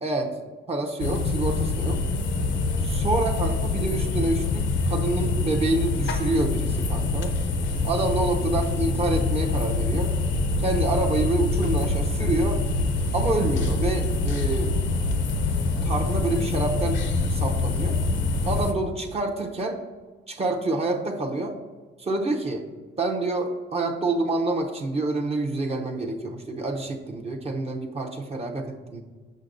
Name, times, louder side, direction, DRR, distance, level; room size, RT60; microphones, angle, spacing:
voice 1, 0.7-2.0 2.8-7.3 7.8-10.1 10.6-12.6 13.1-14.7 15.8-17.0 17.3-18.0 18.4-19.8 20.3-21.5 22.0-22.6 23.0-29.0, right 2 dB, 30° right, 1 dB, 0.7 m, -27 dB
sound 1, 1.0-18.7, left 3 dB, 70° left, 0.6 m, -25 dB
6.4 x 5.9 x 2.6 m, 1.4 s
cardioid pair, 90°, 20 cm